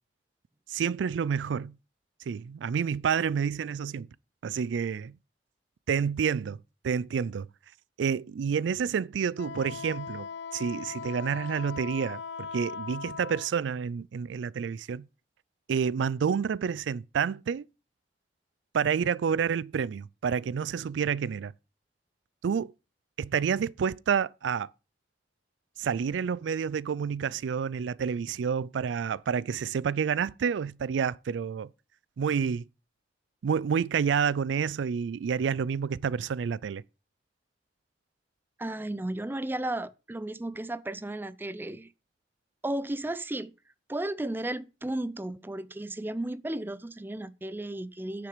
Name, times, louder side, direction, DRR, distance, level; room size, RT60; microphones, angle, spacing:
voice 1, 0.7-1.8 2.3-4.1 4.4-5.2 5.9-7.5 8.0-15.1 15.7-17.6 18.7-21.5 22.4-22.7 23.2-24.7 25.8-31.7 32.2-32.7 33.4-36.8, right 7 dB, 90° right, 0.4 m, -29 dB
Wind instrument woodwind instrument, 9.4-13.5, left 6 dB, 90° left, 0.7 m, -39 dB
voice 2, 38.6-41.9 42.6-43.5 43.9-48.3, right 1 dB, 10° right, 0.4 m, -34 dB
9.2 x 6.8 x 4.9 m
head